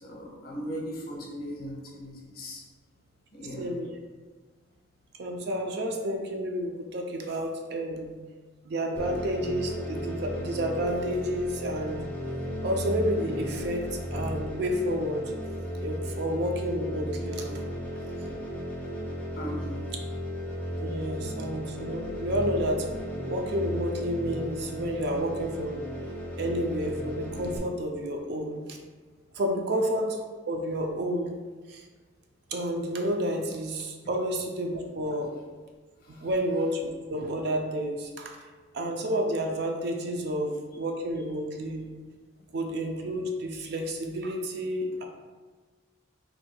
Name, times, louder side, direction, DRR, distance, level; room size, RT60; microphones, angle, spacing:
voice 1, 0.0-2.6 3.3-3.8 19.3-19.8 36.0-36.3, equal, 45° left, -2 dB, 0.7 m, -38 dB
voice 2, 3.6-3.9 5.2-8.1 8.7-12.0 12.6-15.3 15.8-17.6 20.8-22.9 23.3-25.8 26.4-28.8 29.3-30.2 30.5-31.3 31.7-31.8 32.5-35.3 36.2-38.4 38.7-41.8 42.5-45.0, equal, 55° right, 3 dB, 0.4 m, -30 dB
sound 1, 9.0-27.6, equal, 10° left, 0.6 m, -35 dB
4.4 x 2.7 x 2.2 m, 1.4 s
head